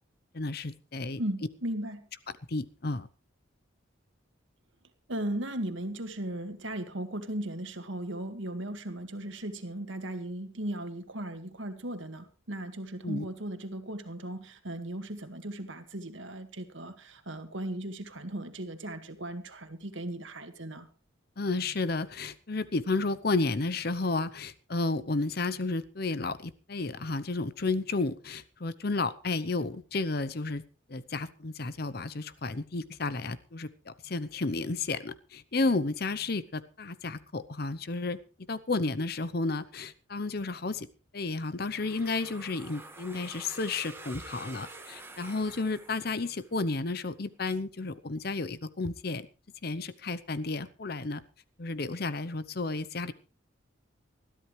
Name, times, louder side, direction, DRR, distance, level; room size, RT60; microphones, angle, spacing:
voice 1, 0.3-1.2 2.5-3.1 13.0-13.3 21.4-30.6 30.9-38.2 38.5-40.9 41.1-49.3 49.6-51.2 51.6-53.1, left 3 dB, 50° left, 15 dB, 0.8 m, -32 dB
voice 2, 1.2-2.1 5.1-20.9, right 1 dB, 70° right, 8 dB, 1.9 m, -37 dB
sound 1, 41.7-46.6, right 2 dB, 10° right, 1.6 m, -48 dB
21.0 x 13.5 x 3.3 m, 0.34 s
head